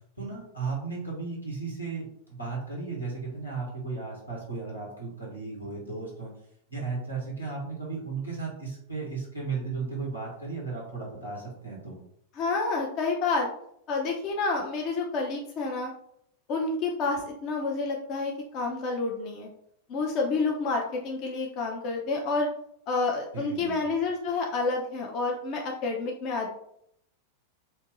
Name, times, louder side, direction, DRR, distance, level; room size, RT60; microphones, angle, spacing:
voice 1, 0.2-6.3 6.7-12.0 23.3-23.8, right 4 dB, 85° left, -3 dB, 1.4 m, -35 dB
voice 2, 12.3-13.5 13.9-15.9 16.5-19.5 19.9-22.5 22.9-26.5, left 3 dB, 40° left, 0 dB, 0.6 m, -29 dB
2.9 x 2.7 x 3.7 m, 0.71 s
figure-of-eight pair, 90°, 0 cm